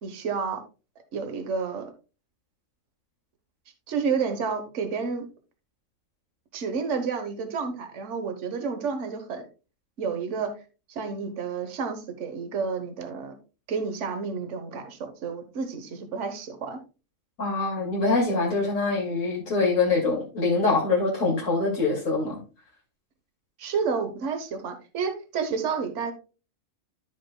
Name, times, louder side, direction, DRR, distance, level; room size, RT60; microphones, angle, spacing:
voice 1, 0.0-0.6 1.1-1.9 3.9-5.2 6.5-9.5 10.0-10.5 10.9-13.3 13.7-16.8 23.6-26.1, right 5 dB, 60° right, 7 dB, 1.4 m, -30 dB
voice 2, 17.4-22.4, left 3 dB, 65° left, -3 dB, 2.7 m, -24 dB
14.0 x 5.1 x 2.2 m, 0.32 s
omnidirectional pair, 1.4 m